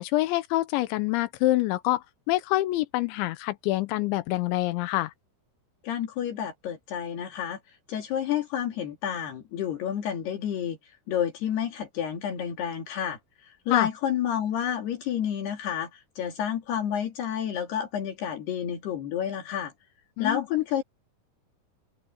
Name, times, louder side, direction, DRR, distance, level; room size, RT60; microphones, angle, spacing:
voice 1, 0.0-2.0 2.3-5.1 13.7-13.9 20.2-20.4, left 17 dB, 90° left, 3.2 m, -26 dB
voice 2, 5.8-7.6 7.9-10.8 11.1-19.7 20.2-20.8, left 9 dB, 65° left, 4.1 m, -30 dB
open air
omnidirectional pair, 5.3 m